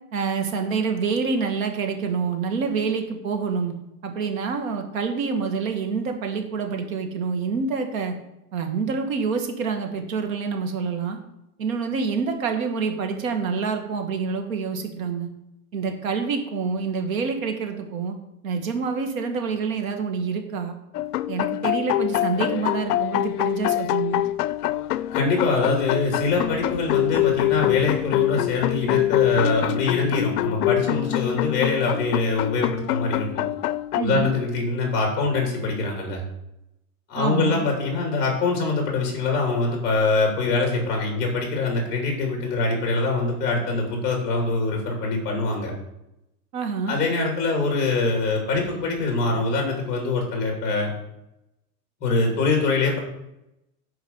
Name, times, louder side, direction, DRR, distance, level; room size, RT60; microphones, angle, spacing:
voice 1, 0.1-3.7 4.0-8.1 8.5-11.2 11.6-15.3 15.7-18.2 18.4-20.7 21.3-24.2 34.0-34.3 37.2-37.7 46.5-47.0, right 5 dB, 60° right, 5 dB, 1.8 m, -27 dB
sound 1, 20.9-34.0, left 15 dB, 80° left, 0.5 m, -25 dB
voice 2, 25.1-33.4 34.0-36.2 37.1-45.7 46.9-50.9 52.0-53.0, left 3 dB, 20° left, 1 dB, 2.8 m, -24 dB
9.3 x 4.8 x 7.0 m, 0.88 s
supercardioid pair, 175°, 46 cm